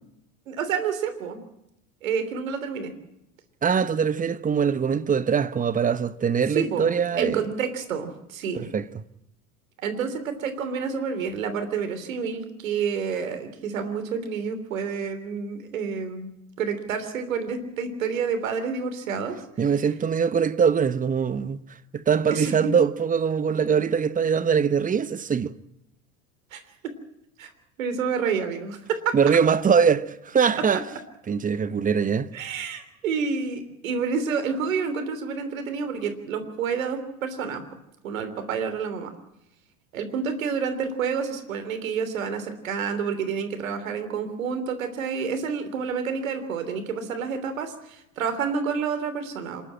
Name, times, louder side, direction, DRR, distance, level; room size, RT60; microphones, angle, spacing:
voice 1, 0.5-1.4 2.0-2.9 6.5-6.9 7.2-8.7 9.8-16.3 16.6-19.4 22.3-22.7 26.5-26.9 27.4-27.5 27.8-29.2 32.3-37.6 38.0-39.1 39.9-49.6, right 6 dB, 70° right, 3.3 m, -29 dB
voice 2, 3.6-7.4 8.5-8.9 19.6-21.6 21.9-25.5 29.1-30.8 31.3-32.3, right 6 dB, 20° right, 1.0 m, -22 dB
27.0 x 12.0 x 8.8 m
figure-of-eight pair, 75°, 41 cm